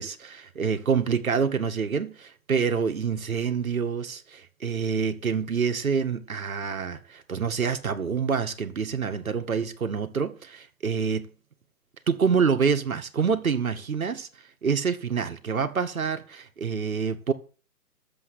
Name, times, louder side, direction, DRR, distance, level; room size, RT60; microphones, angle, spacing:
voice 1, 0.0-11.3 12.1-14.3 14.6-17.3, right 6 dB, 65° right, 2.1 m, -27 dB
13.5 x 7.9 x 8.0 m
figure-of-eight pair, 135°, 45 cm